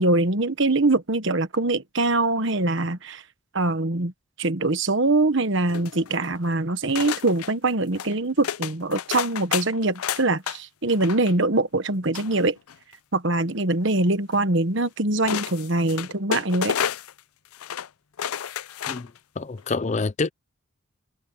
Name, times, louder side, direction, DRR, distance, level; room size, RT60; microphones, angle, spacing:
voice 1, 0.0-3.2 3.5-4.1 4.4-12.6 13.1-16.7, right 2 dB, 60° right, 1.3 m, -23 dB
sound 1, 5.7-6.4 7.0-7.5 7.9-8.1 8.4-10.6 10.9-11.3 12.1-12.9 14.3-14.4 15.2-17.2 17.5-17.9 18.2-19.2 19.6-19.7, left 9 dB, 90° left, 0.5 m, -30 dB
voice 2, 19.4-20.3, left 3 dB, 35° left, 0.5 m, -27 dB
head